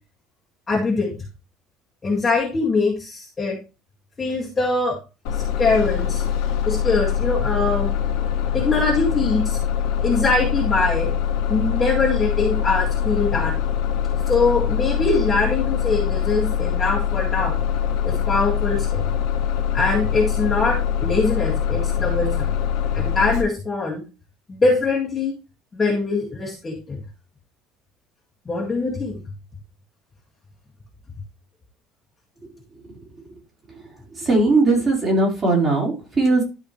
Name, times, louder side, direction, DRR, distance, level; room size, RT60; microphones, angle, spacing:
voice 1, 0.7-1.1 2.0-3.6 4.2-5.0 5.6-6.2 6.6-7.9 8.5-9.6 10.0-11.1 11.5-13.6 14.3-17.6 18.0-19.1 19.7-22.5 22.9-24.0 24.5-25.3 25.7-27.0 28.5-29.2, left 3 dB, 15° left, -4 dB, 2.1 m, -22 dB
Bus, 5.2-23.4, left 9 dB, 80° left, 2.4 m, -23 dB
voice 2, 34.2-36.4, right 2 dB, 20° right, -2 dB, 3.8 m, -19 dB
12.5 x 5.0 x 3.2 m, 0.28 s
cardioid pair, 175°, 0 cm